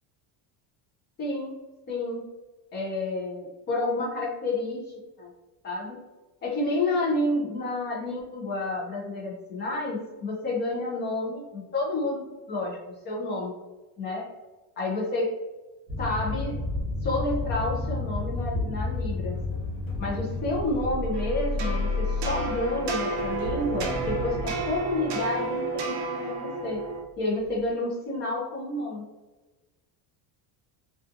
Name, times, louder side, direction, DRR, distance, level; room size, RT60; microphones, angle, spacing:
voice 1, 1.2-1.5 1.9-2.3 2.7-5.3 5.6-6.0 6.4-13.5 14.0-14.3 14.8-15.3 16.0-16.6 17.0-19.4 20.0-26.8 27.2-29.0, left 2 dB, 25° left, -3 dB, 0.4 m, -30 dB
sound 1, 15.9-21.7, left 2 dB, 10° right, 0.9 m, -32 dB
sound 2, 16.7-27.0 27.4-27.7, left 2 dB, 75° left, 0.9 m, -34 dB
sound 3, 21.1-27.0, right 3 dB, 55° right, 0.5 m, -32 dB
2.6 x 2.4 x 2.4 m, 1.1 s
cardioid pair, 170°, 50 cm